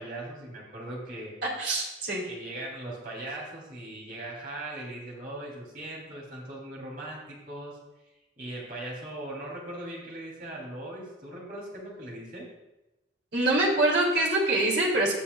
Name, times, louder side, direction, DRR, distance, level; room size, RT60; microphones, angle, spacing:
voice 1, 0.0-1.3 2.3-7.8 8.4-12.5, right 1 dB, 50° right, -3 dB, 3.4 m, -39 dB
voice 2, 1.6-2.3 13.3-15.1, right 2 dB, 65° right, -2 dB, 2.8 m, -24 dB
19.5 x 7.1 x 2.4 m, 1.0 s
head